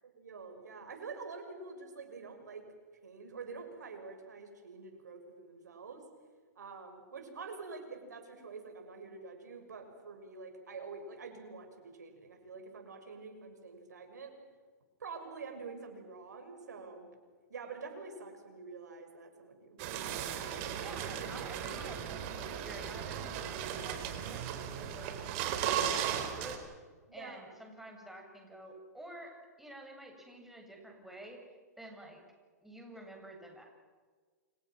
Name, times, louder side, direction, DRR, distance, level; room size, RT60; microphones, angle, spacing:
voice 1, 0.0-2.7 3.0-6.0 6.5-14.3 15.0-17.1 17.5-19.8 20.2-20.9 27.1-27.4 31.8-32.0, right 4 dB, 80° right, 5 dB, 6.7 m, -47 dB
sound 1, 19.8-26.6, right 9 dB, 45° right, 4.6 m, -36 dB
voice 2, 20.8-25.1 25.6-26.7 27.1-31.4 31.8-32.2 32.6-33.6, right 1 dB, 5° right, 1 dB, 7.5 m, -50 dB
29.5 x 27.0 x 6.2 m, 1.5 s
hypercardioid pair, 115°, 9 cm